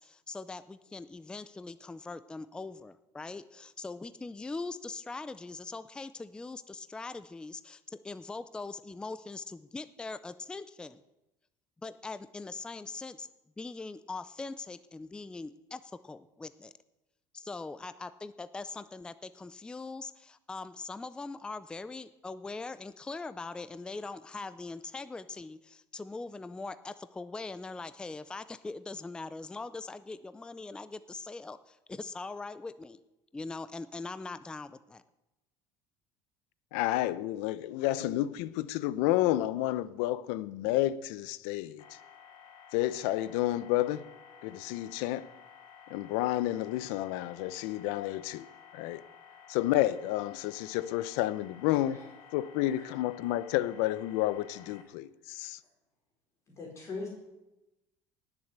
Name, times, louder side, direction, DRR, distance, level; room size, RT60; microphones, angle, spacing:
voice 1, 0.0-11.0 11.8-13.3 13.6-16.7 17.3-33.0 33.3-35.0, left 3 dB, 10° left, 0.5 m, -41 dB
voice 2, 36.7-41.8 42.7-44.0 44.4-45.3 45.9-48.5 48.7-49.0 49.5-52.0 52.3-55.6, left 15 dB, 90° left, 0.7 m, -30 dB
sound 1, 41.8-54.8, left 7 dB, 55° left, 1.8 m, -54 dB
voice 3, 52.5-52.9 56.6-57.1, left 3 dB, 30° left, 4.7 m, -41 dB
18.5 x 7.3 x 8.0 m
cardioid pair, 140°, 9 cm